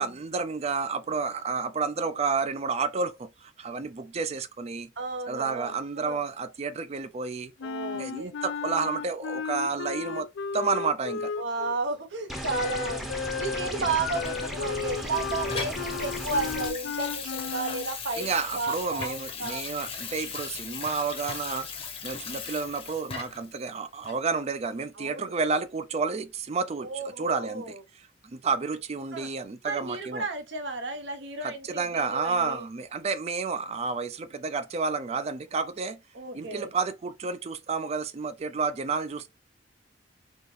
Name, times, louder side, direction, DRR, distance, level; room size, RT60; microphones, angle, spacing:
voice 1, 0.0-4.9 5.3-7.5 7.9-10.3 10.5-11.3 18.2-27.7 28.2-30.2 31.4-36.0 36.3-39.3, right 4 dB, 35° right, 0.4 m, -30 dB
voice 2, 5.0-6.2 7.6-8.3 11.4-13.1 13.4-19.6 25.0-25.3 26.8-27.8 29.1-29.3 29.6-32.6 36.1-36.7, right 3 dB, 70° right, 0.8 m, -33 dB
Wind instrument woodwind instrument, 7.6-11.8 12.5-17.9, left 6 dB, 70° left, 0.3 m, -34 dB
sound 1, 12.3-16.7, equal, ahead, 0.7 m, -36 dB
Water tap faucet / Sink (filling or washing), 14.2-23.5 24.0-24.2, left 6 dB, 30° left, 0.7 m, -38 dB
4.1 x 2.8 x 3.2 m
head